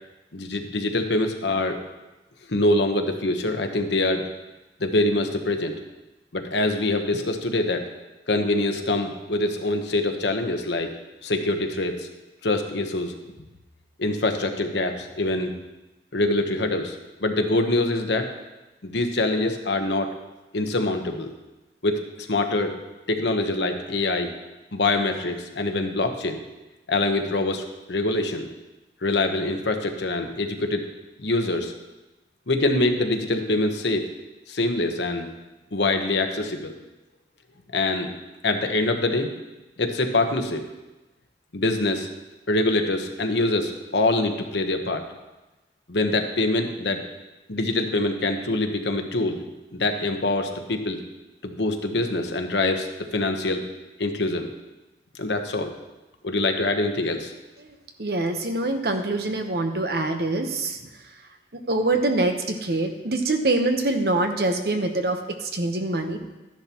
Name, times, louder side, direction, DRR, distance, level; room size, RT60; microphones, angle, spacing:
voice 1, 0.3-1.8 2.5-4.3 4.8-5.8 6.3-7.8 8.3-10.9 11.2-12.1 12.4-13.1 14.0-15.5 16.1-18.3 18.8-20.1 20.5-21.3 21.8-22.8 23.1-24.3 24.7-26.4 26.9-28.5 29.0-30.9 31.2-31.7 32.5-34.1 34.5-35.3 35.7-36.7 37.7-38.1 38.4-39.3 39.8-40.6 41.5-42.1 42.5-45.0 45.9-47.1 47.5-49.4 49.7-51.0 51.4-53.6 54.0-54.5 55.2-55.7 56.2-57.3, left 2 dB, 80° left, 5 dB, 1.0 m, -24 dB
voice 2, 57.6-61.0 61.5-66.2, right 2 dB, 60° right, 5 dB, 1.0 m, -25 dB
13.0 x 10.5 x 3.0 m, 1.1 s
head